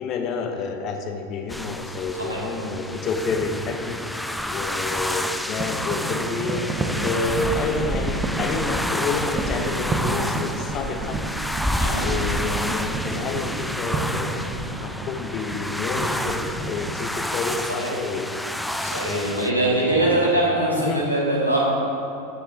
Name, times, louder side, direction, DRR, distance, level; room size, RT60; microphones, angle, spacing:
voice 1, 0.0-4.0 4.4-6.6 7.0-11.2 12.0-18.3 19.0-20.2 20.8-21.0, left 4 dB, 35° left, 5 dB, 1.0 m, -29 dB
sound 1, 1.5-19.5, left 1 dB, ahead, 0.4 m, -29 dB
sound 2, 5.6-17.0, right 3 dB, 25° right, 1.0 m, -31 dB
voice 2, 18.8-21.6, right 2 dB, 90° right, -5 dB, 2.1 m, -22 dB
13.0 x 6.9 x 3.8 m, 2.7 s
figure-of-eight pair, 85°, 0 cm